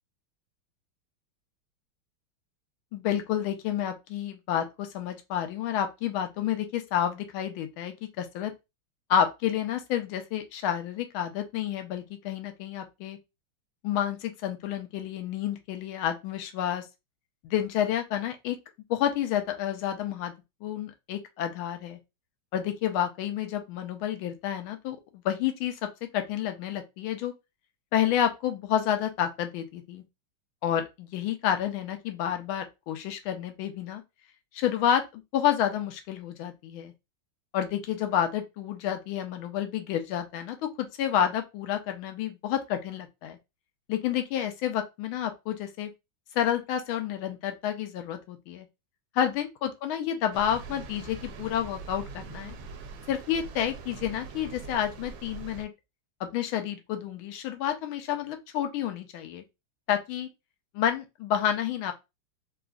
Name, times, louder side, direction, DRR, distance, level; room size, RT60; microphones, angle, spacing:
voice 1, 2.9-8.5 9.1-13.2 13.8-16.9 17.4-18.6 18.9-20.3 20.6-22.0 22.5-25.0 25.2-27.3 27.9-30.0 30.6-34.0 34.5-36.9 37.5-43.4 43.9-45.9 46.3-48.7 49.1-52.5 53.1-55.7 56.2-59.4 59.9-60.3 60.7-61.9, left 10 dB, 85° left, 1.5 m, -29 dB
sound 1, 50.3-55.6, right 4 dB, 75° right, 1.3 m, -42 dB
3.9 x 2.4 x 2.3 m
omnidirectional pair, 2.3 m